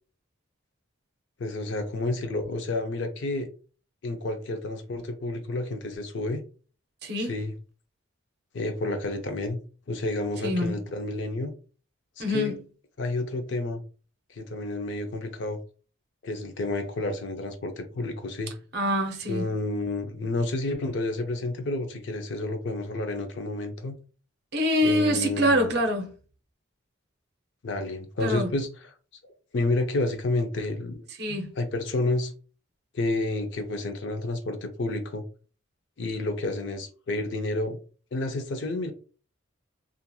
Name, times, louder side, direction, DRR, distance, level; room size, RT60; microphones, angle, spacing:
voice 1, 1.4-3.5 4.0-6.4 7.2-7.5 8.5-9.6 9.9-11.5 12.2-12.5 13.0-13.8 14.3-15.6 16.2-18.5 19.3-23.9 24.8-25.7 27.6-28.7 29.5-31.1 31.6-32.3 32.9-35.2 36.0-37.8 38.1-38.9, left 2 dB, 60° left, 0.4 m, -30 dB
voice 2, 7.0-7.3 10.4-10.7 12.2-12.6 18.7-19.5 24.5-26.1 28.2-28.5 31.2-31.5, equal, 50° right, 0.6 m, -25 dB
2.9 x 2.5 x 2.2 m
head